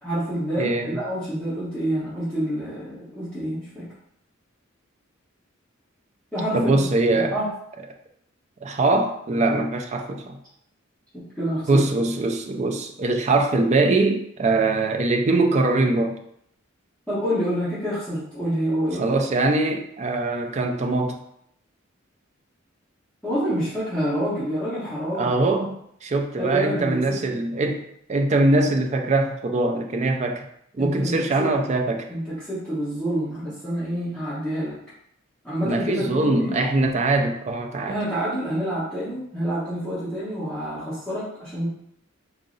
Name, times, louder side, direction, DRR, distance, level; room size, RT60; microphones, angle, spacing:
voice 1, 0.0-3.9 6.3-7.5 11.3-11.8 17.1-19.0 23.2-25.3 26.4-27.2 30.8-31.5 32.1-34.8 35.4-36.6 37.8-41.7, equal, 5° left, -15 dB, 1.1 m, -27 dB
voice 2, 0.6-1.0 6.5-7.4 8.6-10.4 11.7-16.2 18.9-21.2 25.1-25.8 26.0-27.8 28.1-30.5 30.7-32.1 35.6-38.0, right 2 dB, 35° right, 4 dB, 0.3 m, -22 dB
3.8 x 2.0 x 3.7 m, 0.73 s
head